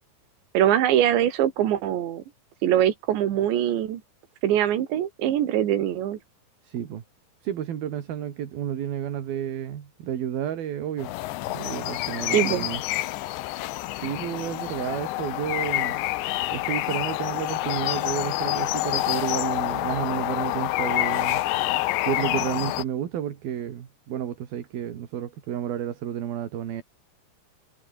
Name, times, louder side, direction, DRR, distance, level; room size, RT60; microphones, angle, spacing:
voice 1, 0.5-2.2 2.6-4.0 4.4-6.2 12.3-12.7, right 11 dB, 85° right, 4.4 m, -22 dB
voice 2, 6.6-7.0 7.4-11.2 11.5-12.8 13.9-16.0 16.5-21.5 22.0-26.8, right 10 dB, 60° right, 3.9 m, -31 dB
sound 1, 11.0-22.8, left 17 dB, 85° left, 3.3 m, -27 dB
omnidirectional pair, 5.0 m